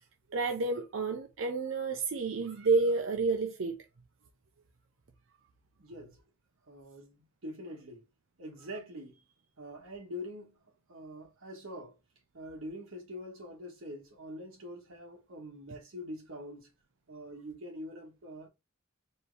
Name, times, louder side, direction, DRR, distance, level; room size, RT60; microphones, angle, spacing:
voice 1, 0.3-3.8, right 3 dB, 65° right, 0.6 m, -30 dB
voice 2, 5.8-6.2 6.7-8.0 8.4-9.3 9.6-10.6 10.9-11.9 12.3-16.7 17.1-18.5, equal, 90° right, 1.3 m, -44 dB
4.4 x 2.8 x 3.2 m
head